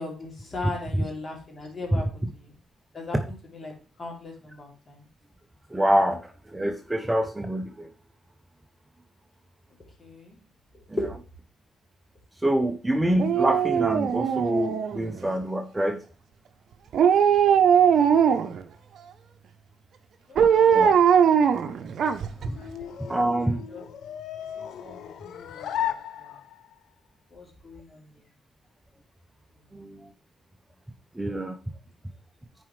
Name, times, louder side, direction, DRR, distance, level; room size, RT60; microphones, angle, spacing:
voice 1, 0.0-2.5 2.9-3.7 4.0-5.0 10.0-10.4 11.0-11.1 20.3-20.8 22.5-23.0 23.7-23.9 24.6-25.9 26.2-26.4 27.3-28.1 29.7-29.8, left 2 dB, 35° left, 0 dB, 2.6 m, -38 dB
voice 2, 5.7-7.9 12.4-16.0 20.4-21.0 22.5-22.6 23.1-23.6 29.7-30.1 31.2-31.6, right 1 dB, 10° right, 6 dB, 0.6 m, -26 dB
Dog, 13.2-15.2 16.9-18.6 20.4-22.5 22.8-22.9, right 8 dB, 65° right, 0.6 m, -20 dB
sound 1, 21.8-26.8, left 10 dB, 75° left, 0.6 m, -36 dB
9.3 x 4.8 x 3.2 m, 0.37 s
cardioid pair, 90°, 0 cm